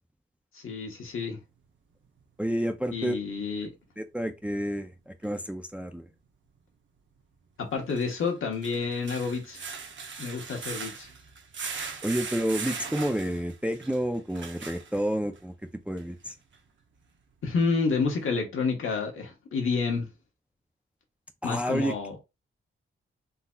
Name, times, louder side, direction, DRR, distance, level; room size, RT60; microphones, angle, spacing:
voice 1, 0.5-1.4 2.9-3.7 7.6-9.6 10.2-11.1 17.4-20.1 21.4-22.2, left 4 dB, 80° left, 1.2 m, -29 dB
voice 2, 2.4-3.1 4.0-6.1 12.0-15.5 15.9-16.3 21.4-22.0, equal, 5° right, 0.4 m, -30 dB
sound 1, 5.2-5.3 7.8-15.4 16.0-16.1 16.5-16.6, right 5 dB, 65° right, 0.6 m, -39 dB
3.7 x 2.7 x 2.2 m
wide cardioid pair, 150°, 21 cm